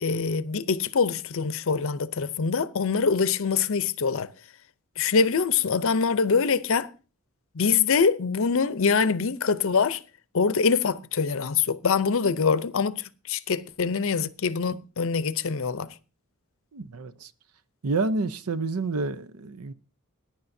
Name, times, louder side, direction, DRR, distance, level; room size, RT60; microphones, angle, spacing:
voice 1, 0.0-4.3 5.0-6.9 7.6-10.0 10.3-15.9, left 5 dB, 65° left, 0.6 m, -24 dB
voice 2, 16.7-17.3 17.8-19.7, right 3 dB, 80° right, 0.7 m, -29 dB
20.0 x 10.0 x 2.7 m
head